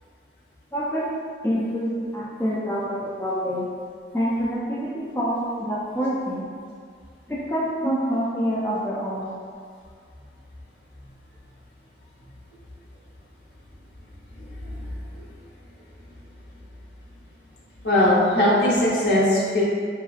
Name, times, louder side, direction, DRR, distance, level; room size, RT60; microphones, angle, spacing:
voice 1, 0.7-1.1 1.4-3.7 4.1-6.4 7.3-9.3, equal, 10° left, -8 dB, 0.3 m, -26 dB
voice 2, 14.6-14.9 15.1-15.2 17.8-19.6, left 1 dB, 65° left, -8 dB, 0.9 m, -20 dB
3.0 x 2.8 x 2.4 m, 2.1 s
head